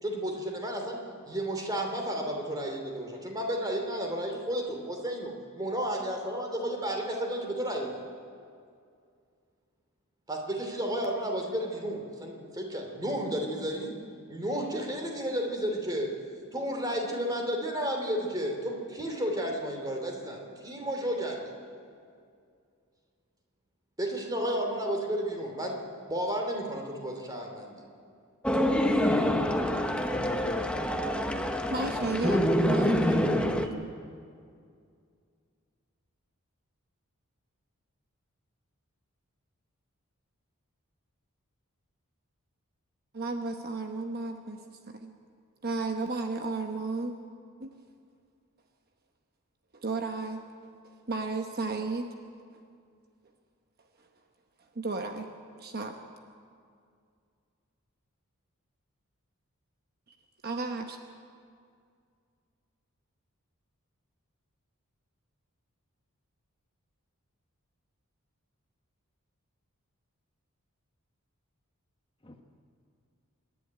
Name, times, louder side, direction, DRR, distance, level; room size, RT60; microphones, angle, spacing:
voice 1, 0.0-1.0 1.3-8.0 10.3-13.9 14.3-16.1 16.5-21.5 24.0-25.8 26.1-27.7, equal, 15° right, 2 dB, 3.0 m, -32 dB
sound 1, 28.4-33.7, left 1 dB, 5° left, 0.9 m, -26 dB
voice 2, 30.1-31.1 72.2-72.4, left 2 dB, 25° left, 4 dB, 1.1 m, -38 dB
voice 3, 31.7-33.9 43.1-45.1 45.6-47.1 47.6-47.7 49.7-50.4 51.1-52.1 54.7-55.3 55.6-56.0 60.4-61.0, right 3 dB, 45° right, 5 dB, 1.0 m, -33 dB
26.5 x 11.0 x 9.4 m, 2.3 s
head